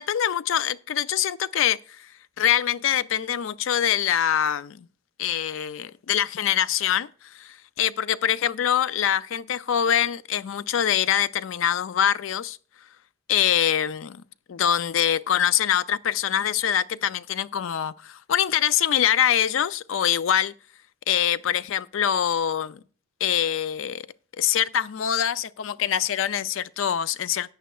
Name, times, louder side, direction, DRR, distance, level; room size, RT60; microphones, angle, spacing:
voice 1, 0.0-2.1 2.4-4.9 5.2-12.6 13.3-14.2 14.5-20.5 21.1-22.8 23.2-24.0 24.4-27.5, left 9 dB, 65° left, 0.4 m, -24 dB
13.5 x 9.1 x 2.3 m
head